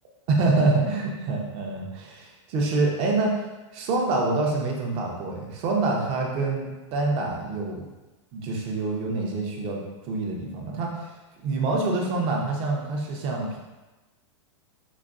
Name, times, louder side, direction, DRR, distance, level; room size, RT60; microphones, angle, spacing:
voice 1, 0.3-3.3 3.7-7.9 8.3-11.1 11.4-13.6, right 3 dB, 35° right, 0 dB, 0.7 m, -26 dB
5.0 x 2.5 x 2.5 m, 1.1 s
hypercardioid pair, 135°, 16 cm